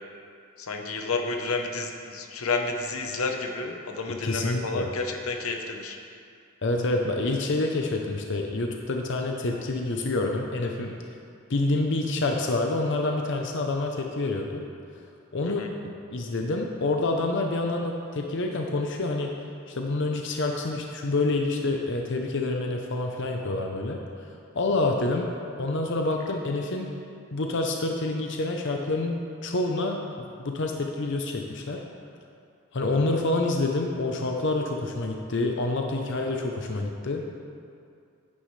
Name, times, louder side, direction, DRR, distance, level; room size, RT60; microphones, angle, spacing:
voice 1, 0.6-6.0 15.4-15.7, left 3 dB, 85° left, 3 dB, 0.9 m, -30 dB
voice 2, 4.1-4.9 6.6-10.9 11.5-14.6 15.3-15.6 16.1-19.3 19.7-24.0 24.6-25.3 25.6-26.9 27.3-31.8 32.7-37.2, left 2 dB, 55° left, 2 dB, 0.7 m, -27 dB
9.8 x 9.7 x 3.2 m, 2.4 s
head